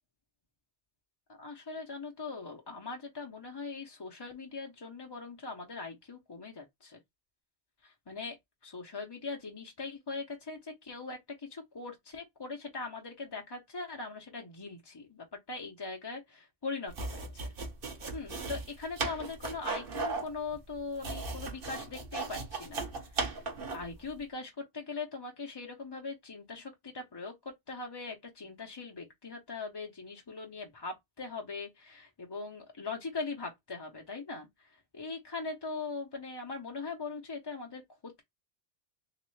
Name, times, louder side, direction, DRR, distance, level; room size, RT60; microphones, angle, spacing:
voice 1, 1.3-7.0 7.8-8.4 8.6-17.5 18.1-23.4 23.7-38.2, left 4 dB, 30° left, 0.5 m, -41 dB
sound 1, 16.9-23.9, right 3 dB, 55° right, 1.0 m, -37 dB
3.2 x 2.9 x 3.1 m
omnidirectional pair, 1.2 m